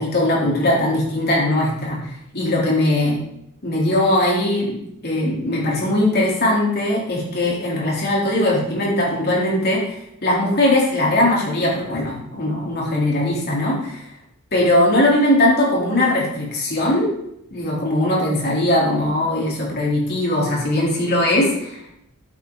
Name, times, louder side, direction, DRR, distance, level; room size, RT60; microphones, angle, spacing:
voice 1, 0.0-3.2 3.6-4.8 5.0-14.1 14.5-17.1 17.5-21.9, left 1 dB, 50° left, -4 dB, 3.9 m, -20 dB
11.5 x 8.3 x 4.1 m, 0.78 s
head